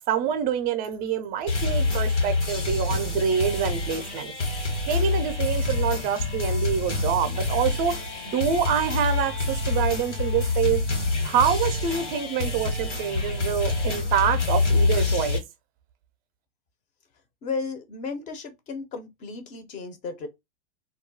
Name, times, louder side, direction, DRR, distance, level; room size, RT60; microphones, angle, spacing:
voice 1, 0.1-4.3 4.9-8.0 8.3-10.8 11.2-15.4, right 8 dB, 25° right, 0.5 m, -26 dB
sound 1, 1.5-15.4, left 3 dB, 85° left, 1.2 m, -26 dB
voice 2, 17.4-20.3, left 4 dB, 20° left, 0.5 m, -34 dB
2.3 x 2.1 x 3.8 m
hypercardioid pair, 115°, 34 cm